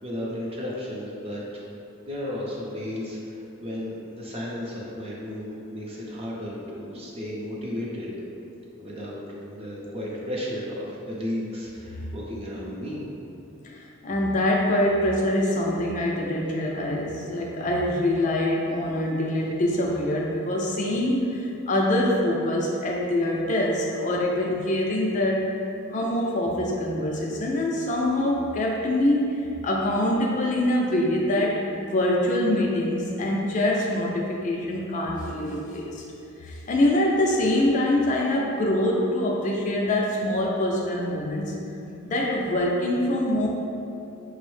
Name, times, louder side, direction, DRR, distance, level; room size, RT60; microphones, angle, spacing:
voice 1, 0.0-1.4 2.0-8.1 8.8-13.0, left 1 dB, 25° right, -4 dB, 0.5 m, -34 dB
voice 2, 13.8-25.5 25.9-29.3 29.6-36.0 36.4-41.5 42.0-43.5, left 1 dB, 35° left, -2 dB, 0.3 m, -24 dB
5.3 x 2.0 x 3.1 m, 2.7 s
head